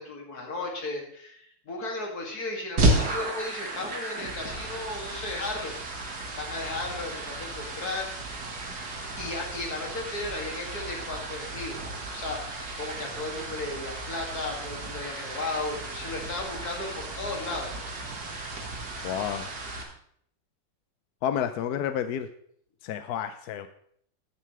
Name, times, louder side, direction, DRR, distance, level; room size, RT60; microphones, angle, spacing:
voice 1, 0.0-8.3 9.2-11.8 12.1-17.8, left 2 dB, 50° left, -1 dB, 2.9 m, -35 dB
sound 1, 2.8-19.8, right 2 dB, 55° right, 2.2 m, -33 dB
voice 2, 19.0-19.5 21.2-22.3 22.8-23.7, left 9 dB, 70° left, 9 dB, 1.0 m, -30 dB
14.0 x 11.0 x 3.3 m, 0.64 s
omnidirectional pair, 2.1 m